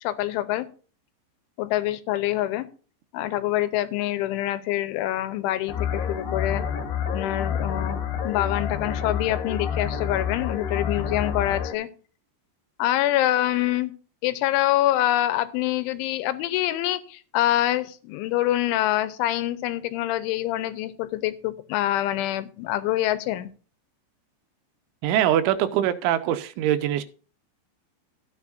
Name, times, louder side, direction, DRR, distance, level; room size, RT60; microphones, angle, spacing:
voice 1, 0.0-0.7 1.6-2.7 3.1-6.6 7.1-8.0 8.2-11.9 12.8-13.9 14.2-23.5, left 14 dB, 85° left, 13 dB, 3.2 m, -25 dB
sound 1, 5.7-11.7, left 7 dB, 65° left, 2.8 m, -28 dB
voice 2, 25.0-27.0, right 11 dB, 85° right, 10 dB, 3.3 m, -23 dB
13.5 x 9.6 x 2.6 m, 0.38 s
omnidirectional pair, 5.4 m